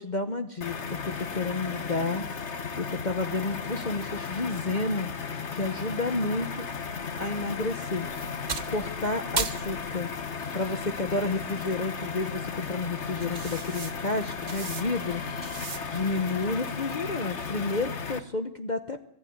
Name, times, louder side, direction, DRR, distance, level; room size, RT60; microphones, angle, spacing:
voice 1, 0.0-2.3 2.8-5.1 5.5-6.7 7.2-8.1 8.7-10.1 10.5-15.3 15.9-19.0, left 3 dB, 80° left, 8 dB, 0.4 m, -30 dB
sound 1, 0.6-18.2, left 5 dB, 40° left, 1.2 m, -35 dB
sound 2, 7.0-16.1, right 5 dB, 90° right, 0.4 m, -40 dB
24.0 x 15.0 x 9.5 m, 0.77 s
omnidirectional pair, 2.3 m